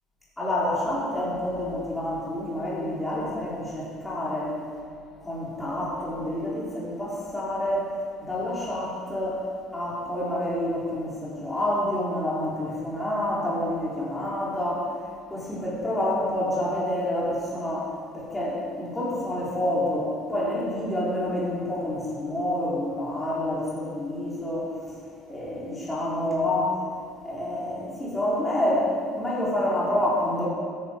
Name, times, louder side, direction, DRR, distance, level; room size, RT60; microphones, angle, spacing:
voice 1, 0.4-4.5 5.2-7.9 8.2-9.4 9.7-14.8 15.3-17.9 18.1-24.6 25.3-26.7 27.2-30.5, left 1 dB, 10° left, -7 dB, 3.6 m, -28 dB
13.0 x 9.7 x 5.1 m, 2.1 s
cardioid pair, 120°, 0 cm